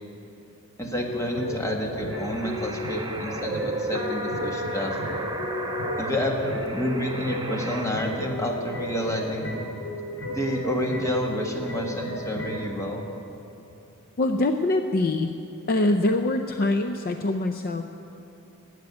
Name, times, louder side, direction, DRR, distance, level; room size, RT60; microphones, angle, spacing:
voice 1, 0.8-5.0 6.0-9.5 10.3-13.0, equal, 15° left, 0 dB, 1.5 m, -29 dB
sound 1, 1.0-12.7, left 1 dB, 70° left, 3.8 m, -34 dB
sound 2, 2.1-7.9, right 2 dB, 20° right, 0.9 m, -34 dB
voice 2, 14.2-15.3 15.7-17.8, left 2 dB, 45° left, 7 dB, 0.5 m, -24 dB
13.0 x 8.2 x 9.4 m, 2.9 s
head